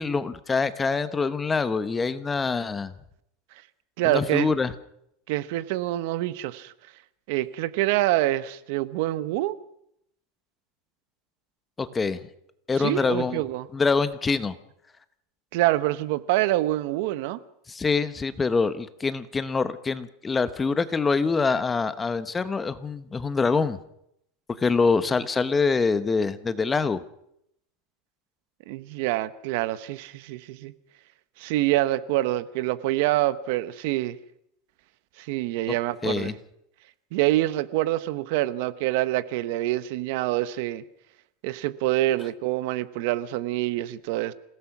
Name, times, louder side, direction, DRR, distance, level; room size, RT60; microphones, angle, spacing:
voice 1, 0.0-2.9 4.0-4.7 11.8-12.2 12.7-13.4 13.7-14.5 17.7-23.8 24.6-27.0 36.0-36.3, left 4 dB, 15° left, 0.9 m, -25 dB
voice 2, 4.0-4.5 5.3-6.7 7.3-9.6 12.8-13.7 15.5-17.4 28.7-30.7 31.4-34.2 35.2-36.3 37.1-40.8 41.4-44.3, right 16 dB, 60° right, 1.0 m, -26 dB
27.0 x 17.0 x 6.0 m
supercardioid pair, 150°, 0 cm